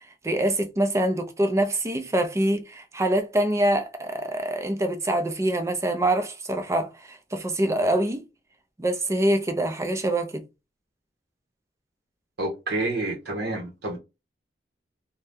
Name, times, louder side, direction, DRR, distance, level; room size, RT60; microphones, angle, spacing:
voice 1, 0.2-8.2 8.8-10.4, right 1 dB, 15° right, 0.5 m, -25 dB
voice 2, 12.4-14.0, right 2 dB, 65° right, 0.9 m, -29 dB
2.7 x 2.2 x 3.4 m
head